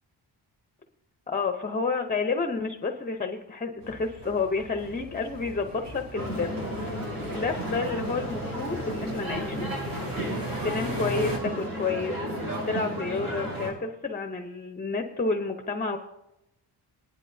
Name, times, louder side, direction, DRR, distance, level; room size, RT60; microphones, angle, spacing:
voice 1, 1.3-6.6 6.9-7.0 7.3-9.7 10.6-12.2 12.7-16.0, left 4 dB, 20° left, 5 dB, 0.8 m, -30 dB
sound 1, 3.8-11.4, right 2 dB, 85° right, 3.3 m, -38 dB
sound 2, 6.1-13.7, equal, 55° right, 6.2 m, -33 dB
24.5 x 10.5 x 2.7 m, 0.91 s
wide cardioid pair, 135°, 42 cm